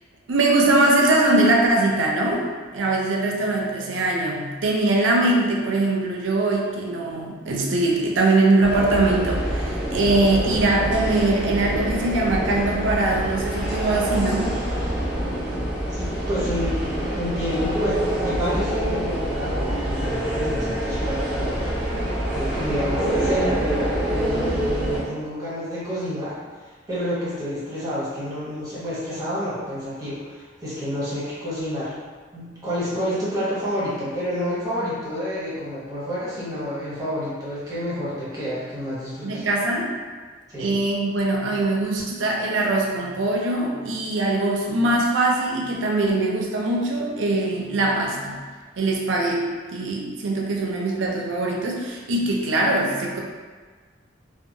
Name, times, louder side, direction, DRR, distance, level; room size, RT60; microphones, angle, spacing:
voice 1, 0.3-14.6 39.2-39.9 40.6-48.4 48.8-53.2, right 2 dB, 85° right, -1 dB, 0.5 m, -22 dB
sound 1, 8.6-25.0, right 1 dB, 5° right, 1.3 m, -26 dB
voice 2, 15.9-16.9 17.1-21.7 22.3-26.4 26.9-31.9 32.3-39.4 40.5-40.7, equal, 20° right, -11 dB, 1.0 m, -29 dB
2.6 x 2.3 x 2.6 m, 1.5 s
head